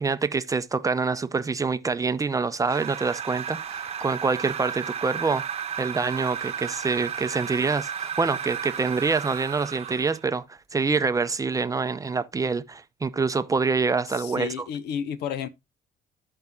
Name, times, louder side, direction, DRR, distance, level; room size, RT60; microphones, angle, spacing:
voice 1, 0.0-5.4 5.8-14.5, right 4 dB, 20° right, 0.5 m, -26 dB
sound 1, 2.6-10.3, right 8 dB, 35° right, 0.9 m, -33 dB
voice 2, 14.1-15.5, left 8 dB, 75° left, 0.8 m, -31 dB
14.5 x 5.4 x 2.3 m
cardioid pair, 110°, 17 cm